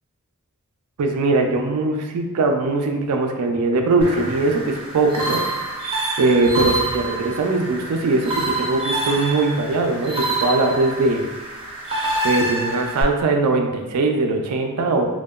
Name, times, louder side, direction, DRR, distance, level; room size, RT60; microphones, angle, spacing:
voice 1, 1.0-5.4 6.2-11.2 12.2-15.1, right 3 dB, 85° right, 3 dB, 0.4 m, -20 dB
sound 1, 4.0-13.0, right 2 dB, 25° right, 0.4 m, -27 dB
2.7 x 2.2 x 2.2 m, 1.1 s
head